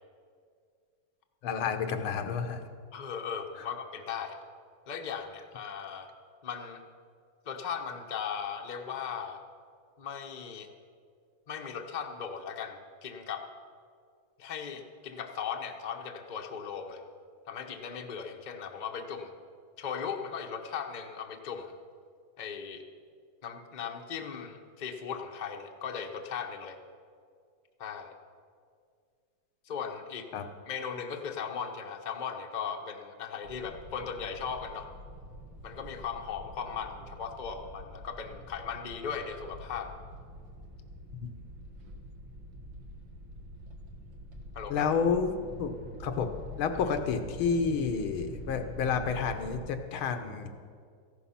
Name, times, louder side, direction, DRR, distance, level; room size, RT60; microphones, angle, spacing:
voice 1, 1.4-2.6 30.3-30.4 44.7-45.7 46.0-50.5, left 6 dB, 75° left, 7 dB, 1.8 m, -30 dB
voice 2, 2.9-4.4 4.9-6.1 6.4-6.8 7.4-9.4 10.0-10.7 11.5-13.4 14.4-17.0 17.5-19.3 19.8-21.8 22.4-22.8 23.4-26.8 27.8-28.2 29.6-30.3 30.7-34.9 35.6-39.9 44.5-44.9, left 7 dB, 40° left, 3 dB, 0.6 m, -38 dB
sound 1, 33.4-49.7, equal, 60° right, 2.1 m, -46 dB
14.5 x 11.5 x 5.7 m, 2.1 s
omnidirectional pair, 2.3 m